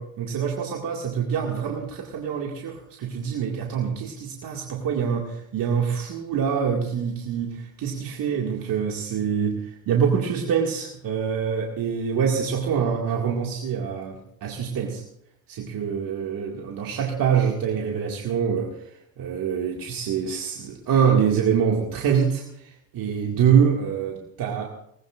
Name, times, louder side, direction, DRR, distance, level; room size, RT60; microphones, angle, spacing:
voice 1, 0.0-15.0 15.5-18.9 19.2-24.7, right 7 dB, 55° right, 0 dB, 2.2 m, -25 dB
20.0 x 19.5 x 2.5 m, 0.73 s
hypercardioid pair, 65°, 42 cm